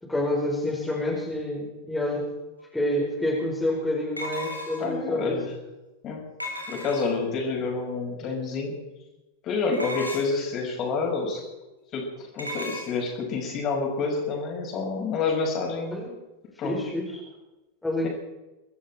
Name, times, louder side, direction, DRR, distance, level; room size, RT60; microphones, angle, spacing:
voice 1, 0.0-2.3 2.7-5.4 15.9-16.1 16.6-17.2 17.8-18.1, left 1 dB, 5° left, -3 dB, 4.8 m, -28 dB
sound 1, 2.6-2.7 4.2-5.0 6.4-7.3 9.7-10.5 12.4-12.9, equal, 90° left, 3.4 m, -35 dB
voice 2, 4.8-5.5 6.0-6.2 6.7-8.8 9.4-11.4 11.9-16.0 16.6-16.8, left 4 dB, 35° left, 0 dB, 5.9 m, -28 dB
24.0 x 13.5 x 4.5 m, 1.0 s
figure-of-eight pair, 90°, 0 cm